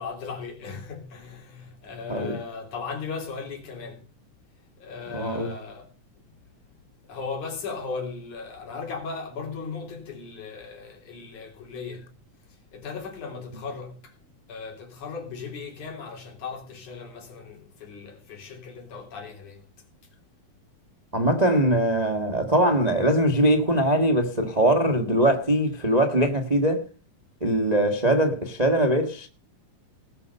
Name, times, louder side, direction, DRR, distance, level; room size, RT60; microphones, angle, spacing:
voice 1, 0.0-4.1 4.8-5.9 7.1-12.1 12.7-14.1 14.5-19.6, left 5 dB, 60° left, 4.7 m, -37 dB
voice 2, 5.1-5.5 21.1-26.8 27.4-29.3, right 1 dB, 80° right, 0.3 m, -22 dB
19.0 x 6.8 x 5.5 m
omnidirectional pair, 4.0 m